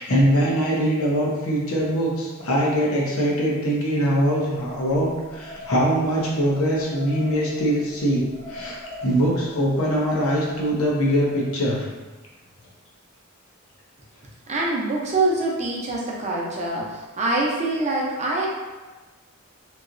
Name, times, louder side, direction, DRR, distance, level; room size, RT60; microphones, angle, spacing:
voice 1, 0.0-11.8, equal, 85° left, -4 dB, 0.8 m, -22 dB
sound 1, 4.6-11.5, equal, 70° left, 1.3 m, -42 dB
voice 2, 14.5-18.5, right 2 dB, 35° right, -3 dB, 0.6 m, -24 dB
3.1 x 2.8 x 2.5 m, 1.2 s
head